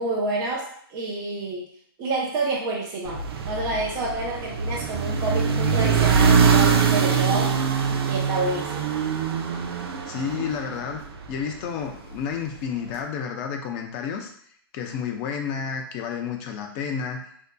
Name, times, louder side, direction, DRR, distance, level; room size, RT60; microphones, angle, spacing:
voice 1, 0.0-1.7 2.0-3.2 3.5-7.5 8.1-8.9, right 3 dB, 25° right, -4 dB, 0.7 m, -28 dB
sound 1, 3.0-11.4, right 6 dB, 75° right, 0.5 m, -23 dB
voice 2, 10.0-14.3 14.7-17.2, left 7 dB, 30° left, 3 dB, 0.5 m, -31 dB
4.5 x 2.6 x 2.2 m, 0.64 s
hypercardioid pair, 150°, 13 cm